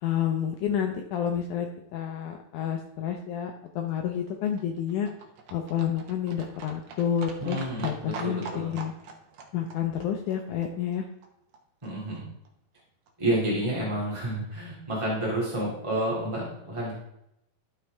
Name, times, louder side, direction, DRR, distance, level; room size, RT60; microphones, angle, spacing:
voice 1, 0.0-5.1 5.5-8.9 9.5-11.0, left 9 dB, 90° left, 4 dB, 1.7 m, -29 dB
Livestock farm animals working animals, 3.4-11.6 11.8-11.9 12.2-12.3 12.5-12.6 12.8-12.9 13.1-13.2 13.4-13.5 13.7-13.8 14.0-14.1, right 4 dB, 70° right, 1.7 m, -44 dB
voice 2, 7.4-8.7 11.8-12.2 13.2-16.9, right 1 dB, 15° right, -6 dB, 1.2 m, -30 dB
12.0 x 6.2 x 3.4 m, 0.81 s
omnidirectional pair, 4.3 m